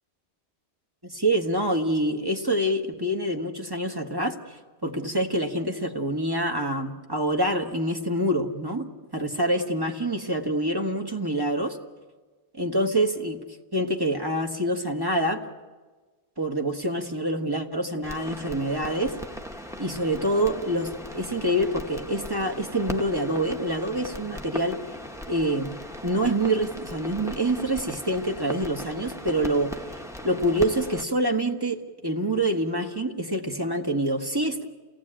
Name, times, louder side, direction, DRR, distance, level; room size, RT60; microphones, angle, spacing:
voice 1, 1.0-4.6 4.8-11.8 12.5-13.4 13.7-15.5 16.4-19.2 19.8-24.8 25.3-25.8 26.0-29.8 30.2-34.6, right 1 dB, 20° right, 3 dB, 1.5 m, -26 dB
sound 1, 18.0-31.0, left 1 dB, 5° right, 1.1 m, -38 dB
28.0 x 18.0 x 8.9 m, 1.3 s
omnidirectional pair, 1.1 m